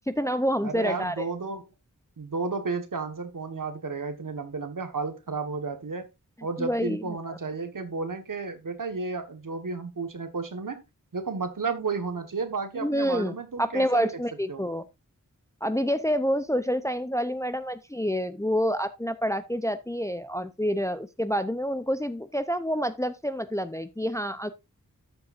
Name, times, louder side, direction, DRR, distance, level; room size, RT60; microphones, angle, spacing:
voice 1, 0.1-1.1 6.6-7.0 12.8-14.8 15.6-24.5, equal, 10° left, 0.6 m, -28 dB
voice 2, 0.6-1.6 2.2-6.1 6.4-10.8 11.1-14.2 14.5-14.7, right 4 dB, 75° right, 1.5 m, -32 dB
13.0 x 6.9 x 2.5 m
wide cardioid pair, 75°, 33 cm